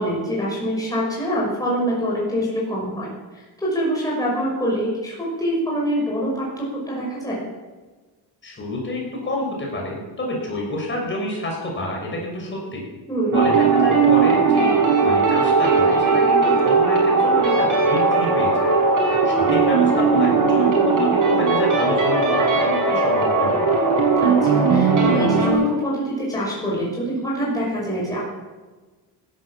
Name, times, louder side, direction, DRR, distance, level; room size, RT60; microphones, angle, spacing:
voice 1, 0.0-7.4 13.1-13.4 24.2-28.2, equal, 10° left, -5 dB, 5.9 m, -25 dB
voice 2, 8.4-12.8 13.3-14.7 15.0-18.7 19.2-23.7, left 1 dB, 30° left, -1 dB, 6.3 m, -28 dB
sound 1, 13.3-25.5, right 4 dB, 50° right, 6.1 m, -18 dB
16.0 x 12.0 x 7.5 m, 1.3 s
cardioid pair, 135°, 41 cm